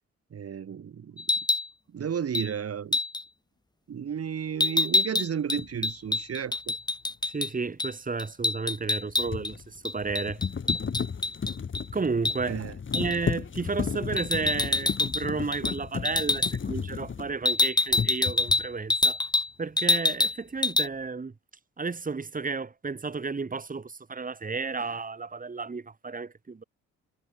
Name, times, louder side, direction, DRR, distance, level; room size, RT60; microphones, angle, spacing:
voice 1, 0.3-1.3 1.9-3.0 3.9-6.8 12.5-12.7, right 8 dB, 50° right, 4.2 m, -33 dB
sound 1, 1.2-1.7 2.3-2.5 2.9-3.2 4.6-7.5 7.8-7.9 8.2-9.5 9.8-11.8 12.2-12.4 12.9-13.2 14.2-15.2 15.5-15.8 16.0-16.5 17.4-19.5 19.8-20.4 20.6-20.9, left 2 dB, 15° left, 1.3 m, -26 dB
sound 2, 5.6-5.7 8.8-17.6 17.9-18.7, left 6 dB, 40° left, 4.4 m, -34 dB
voice 2, 7.3-10.4 11.9-12.6 12.9-19.2 19.6-21.3 21.8-26.6, right 4 dB, 25° right, 4.5 m, -32 dB
cardioid pair, 90°, 30 cm